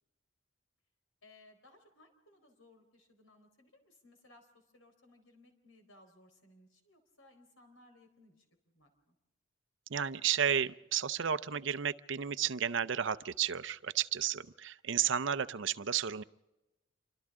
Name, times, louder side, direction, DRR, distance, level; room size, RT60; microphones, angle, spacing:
voice 1, 1.2-9.1, left 2 dB, 80° left, 5 dB, 4.2 m, -62 dB
voice 2, 9.9-16.2, right 8 dB, 60° right, 15 dB, 0.6 m, -32 dB
28.0 x 24.5 x 3.7 m, 1.0 s
head